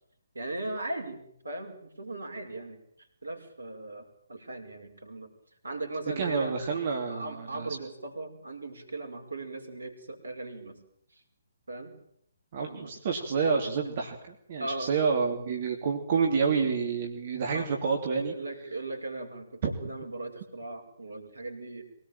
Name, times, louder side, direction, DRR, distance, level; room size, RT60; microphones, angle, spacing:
voice 1, 0.3-5.3 5.6-6.6 7.1-10.8 11.1-11.2 11.7-11.9 12.7-12.9 14.6-15.0 17.5-17.7 18.3-21.9, right 2 dB, 70° right, 6 dB, 5.2 m, -38 dB
voice 2, 6.2-7.7 12.5-14.2 14.5-18.3, right 5 dB, 40° right, 2 dB, 3.1 m, -28 dB
23.5 x 18.5 x 9.0 m, 0.69 s
figure-of-eight pair, 135°, 0 cm